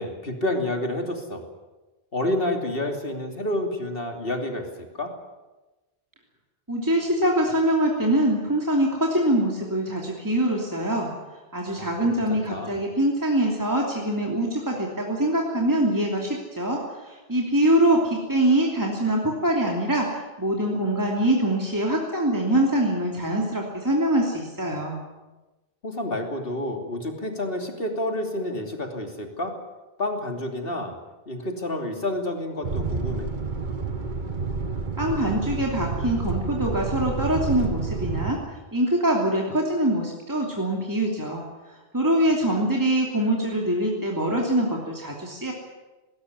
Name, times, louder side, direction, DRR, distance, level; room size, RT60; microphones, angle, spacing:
voice 1, 0.0-1.4 2.1-4.7 4.9-5.1 11.7-12.7 25.8-29.5 30.0-31.0 31.3-33.3, left 1 dB, 65° left, 4 dB, 3.2 m, -29 dB
voice 2, 6.7-11.1 11.5-25.0 35.0-45.5, right 1 dB, 20° right, -1 dB, 3.0 m, -24 dB
sound 1, 32.6-38.3, right 4 dB, 50° right, 1.5 m, -29 dB
19.5 x 19.0 x 9.6 m, 1.1 s
omnidirectional pair, 1.0 m